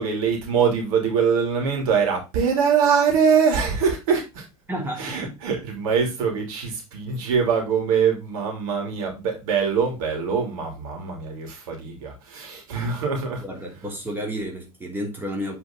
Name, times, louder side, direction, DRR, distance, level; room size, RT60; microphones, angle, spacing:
voice 1, 0.0-4.4 5.0-13.4, right 6 dB, 65° right, 3.1 m, -23 dB
voice 2, 4.7-5.3 13.4-15.6, equal, 10° right, 2.9 m, -31 dB
8.5 x 4.6 x 3.7 m
figure-of-eight pair, 80°, 19 cm